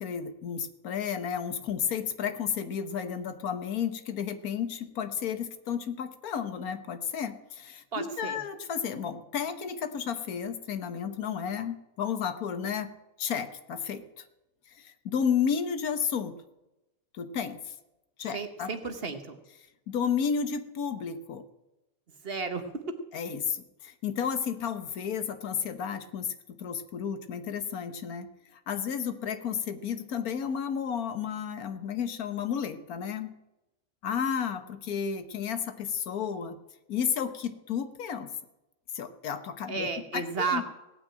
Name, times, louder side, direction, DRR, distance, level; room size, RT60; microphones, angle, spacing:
voice 1, 0.0-12.9 13.2-14.2 14.7-16.3 17.1-17.7 18.2-18.7 19.9-21.4 23.1-33.3 34.0-36.6 36.9-38.3 38.9-40.6, left 7 dB, 90° left, 10 dB, 1.5 m, -32 dB
voice 2, 7.9-8.4 18.3-19.4 22.2-23.0 39.7-40.6, right 4 dB, 45° right, 8 dB, 1.3 m, -33 dB
17.5 x 6.2 x 8.8 m, 0.96 s
omnidirectional pair, 1.5 m